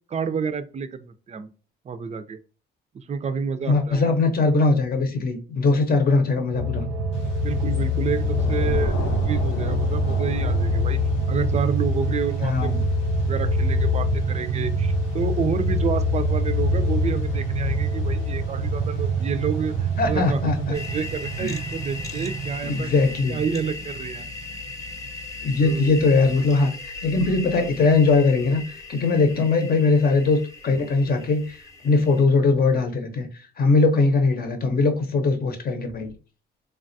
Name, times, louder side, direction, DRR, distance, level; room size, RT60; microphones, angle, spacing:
voice 1, 0.1-1.5 1.8-2.4 2.9-4.1 6.1-6.4 7.4-11.0 11.3-12.9 13.2-22.9 23.3-24.3 25.6-26.0 29.3-29.5, right 6 dB, 35° right, 0.4 m, -29 dB
voice 2, 3.7-6.8 12.4-12.8 20.0-20.8 21.4-21.5 22.6-23.4 25.4-36.1, left 3 dB, 50° left, 0.8 m, -21 dB
sound 1, 6.5-24.1 24.4-24.5, equal, 85° right, 0.5 m, -25 dB
Thunder / Rain, 7.1-23.1, left 3 dB, 90° left, 0.8 m, -38 dB
sound 2, 20.7-32.2, left 3 dB, 15° left, 0.7 m, -38 dB
3.3 x 2.3 x 2.6 m
cardioid pair, 90°, 20 cm